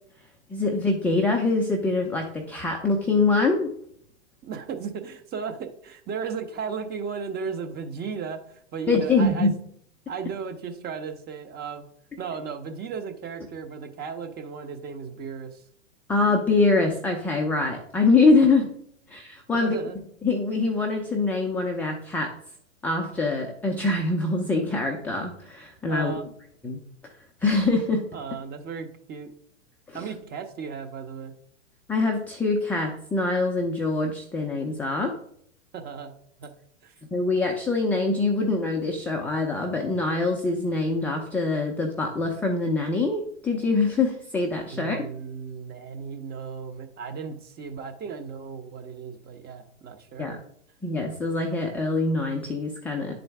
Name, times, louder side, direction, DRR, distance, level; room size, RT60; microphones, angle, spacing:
voice 1, 0.5-3.7 8.9-9.5 16.1-18.7 19.1-19.8 20.2-22.3 22.8-26.1 26.6-26.8 27.4-28.0 29.9-30.0 31.9-35.1 37.1-45.1 50.2-50.4 50.8-53.1, left 3 dB, 5° left, 0 dB, 0.4 m, -24 dB
voice 2, 4.4-9.5 10.1-11.9 12.2-15.6 19.6-20.0 25.9-26.3 28.1-29.3 29.9-31.3 35.7-36.1 36.4-36.5 36.8-36.9 44.7-50.4, right 6 dB, 25° right, 6 dB, 0.8 m, -35 dB
9.8 x 3.9 x 3.4 m, 0.67 s
hypercardioid pair, 115°, 40 cm